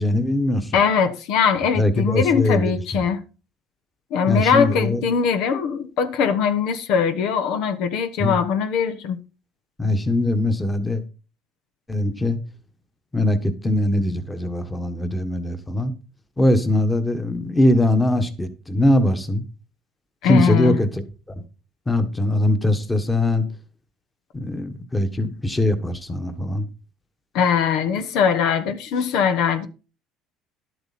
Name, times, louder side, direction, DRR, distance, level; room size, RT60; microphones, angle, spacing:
voice 1, 0.0-0.8 1.8-3.0 4.3-5.0 8.2-8.4 9.8-11.0 11.9-12.4 13.1-15.9 16.4-19.4 20.2-21.4 21.9-23.5 24.3-26.7, left 1 dB, 10° left, 1.5 m, -21 dB
voice 2, 0.7-3.2 4.1-9.2 20.2-20.7 27.3-29.7, left 6 dB, 70° left, 1.2 m, -21 dB
11.5 x 7.9 x 4.3 m
cardioid pair, 115°, 0 cm